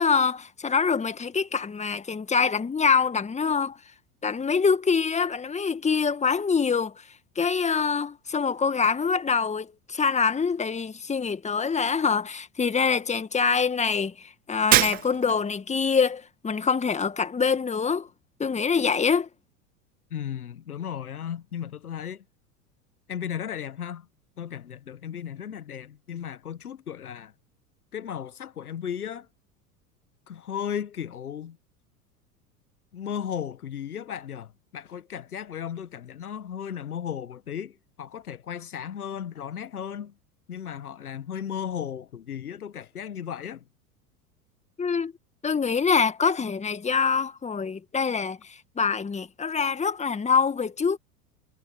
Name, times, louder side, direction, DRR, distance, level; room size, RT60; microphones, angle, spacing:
voice 1, 0.0-3.8 4.2-6.9 7.4-18.1 18.4-19.3 44.8-45.1 45.4-51.0, left 5 dB, 15° left, 2.0 m, -25 dB
Shatter, 14.7-15.5, right 16 dB, 20° right, 0.4 m, -22 dB
voice 2, 20.1-22.2 23.1-24.1 24.4-27.3 27.9-29.3 30.3-31.6 32.9-40.1 40.5-43.6, left 9 dB, 80° left, 1.4 m, -35 dB
figure-of-eight pair, 80°, 44 cm